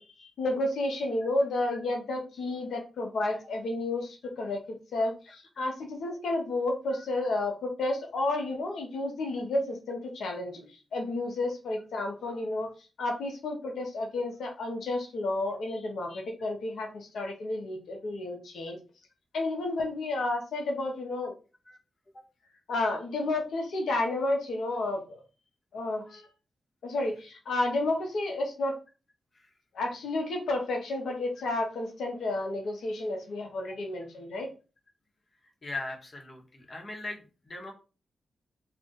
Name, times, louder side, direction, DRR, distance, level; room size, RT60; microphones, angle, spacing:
voice 1, 0.0-12.7 13.0-18.8 19.3-21.3 22.7-25.2 25.7-26.3 26.8-28.8 29.7-34.5, left 2 dB, 80° left, 2 dB, 0.8 m, -31 dB
voice 2, 35.6-37.7, left 2 dB, 45° left, 2 dB, 1.2 m, -40 dB
2.5 x 2.4 x 3.9 m, 0.33 s
supercardioid pair, 40°, 0 cm